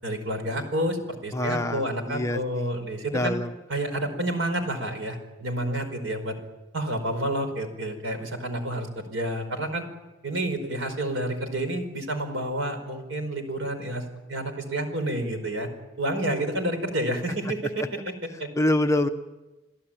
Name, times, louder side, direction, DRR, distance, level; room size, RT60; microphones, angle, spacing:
voice 1, 0.0-3.3 3.7-6.3 6.7-9.9 10.2-14.0 14.3-15.7 16.0-17.8 18.4-18.5, right 1 dB, 75° right, 7 dB, 4.9 m, -29 dB
voice 2, 1.3-2.7 3.1-3.5 18.6-19.1, left 1 dB, 15° left, 6 dB, 0.9 m, -25 dB
28.5 x 17.0 x 9.0 m, 1.1 s
head